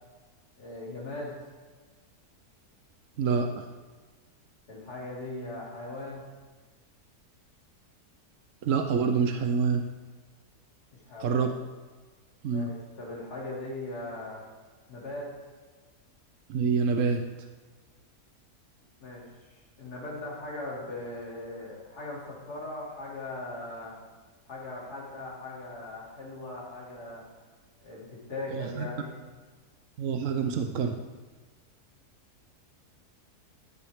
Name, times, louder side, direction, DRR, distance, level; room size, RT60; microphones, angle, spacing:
voice 1, 0.6-1.3 4.7-6.2 10.9-11.5 12.5-14.4 14.9-15.3 19.0-19.2 19.8-23.9 24.5-27.3 27.8-29.2, left 2 dB, 80° left, -4 dB, 3.3 m, -39 dB
voice 2, 3.2-3.7 8.6-9.8 11.2-11.5 12.4-12.7 16.5-17.2 28.5-28.9 30.0-31.0, right 5 dB, 60° right, 5 dB, 0.9 m, -26 dB
14.0 x 8.6 x 3.6 m, 1.4 s
omnidirectional pair, 1.7 m